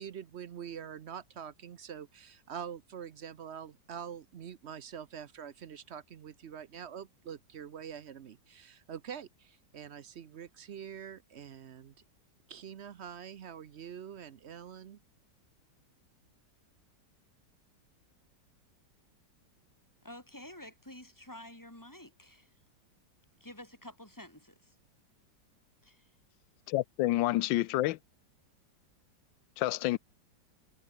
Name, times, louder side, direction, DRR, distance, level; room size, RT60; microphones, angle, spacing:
voice 1, 0.0-11.9 12.5-15.0, right 8 dB, 55° right, 0.7 m, -45 dB
voice 2, 20.0-22.5 23.4-24.8 25.8-26.1, left 1 dB, 10° left, 4.2 m, -50 dB
voice 3, 26.7-28.0 29.6-30.0, left 16 dB, 90° left, 1.3 m, -28 dB
omnidirectional pair, 2.0 m